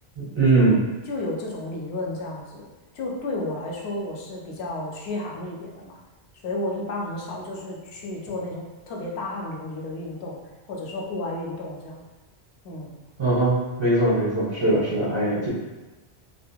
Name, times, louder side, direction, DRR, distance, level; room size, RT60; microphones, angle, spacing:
voice 1, 0.2-0.8 13.2-15.5, right 2 dB, 30° right, -7 dB, 0.7 m, -21 dB
voice 2, 1.1-2.7 2.9-6.0 6.4-10.4 10.7-12.1 12.6-12.9 15.2-15.5, left 2 dB, 80° left, -1 dB, 0.8 m, -32 dB
2.6 x 2.4 x 2.2 m, 1.1 s
omnidirectional pair, 1.1 m